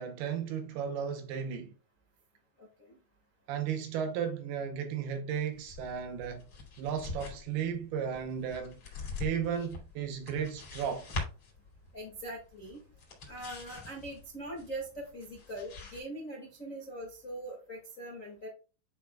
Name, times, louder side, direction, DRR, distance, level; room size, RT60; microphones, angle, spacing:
voice 1, 0.0-1.7 3.5-6.4 6.8-8.8 9.2-11.1, right 7 dB, 75° right, 2.5 m, -34 dB
voice 2, 2.6-3.0 11.9-12.8 13.3-18.5, right 1 dB, 65° left, 0.7 m, -42 dB
sound 1, 5.5-16.0, left 3 dB, 40° left, 2.8 m, -44 dB
10.0 x 5.4 x 2.3 m
omnidirectional pair, 5.0 m